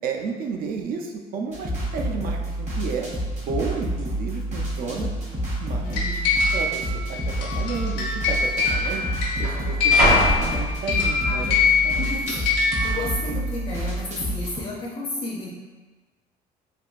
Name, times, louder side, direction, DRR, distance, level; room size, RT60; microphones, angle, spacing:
voice 1, 0.0-3.1 3.4-5.1 5.6-6.1 6.5-6.8 7.1-9.1 9.4-12.1, right 5 dB, 60° right, 3 dB, 0.4 m, -32 dB
sound 1, 1.5-14.6, right 1 dB, 40° right, 1.0 m, -29 dB
sound 2, 2.9-3.3 4.0-4.1 4.8-5.3 5.6-5.7 6.6-6.8 7.8-7.9 8.1-11.3 11.8-12.2, right 1 dB, 75° right, 1.3 m, -27 dB
voice 2, 5.8-6.3 11.2-11.5 12.0-12.2 12.8-15.5, left 2 dB, 35° left, -3 dB, 0.5 m, -32 dB
sound 3, 5.9-13.1, left 5 dB, 90° left, 0.8 m, -24 dB
3.4 x 2.4 x 2.4 m, 1.3 s
cardioid pair, 110°, 17 cm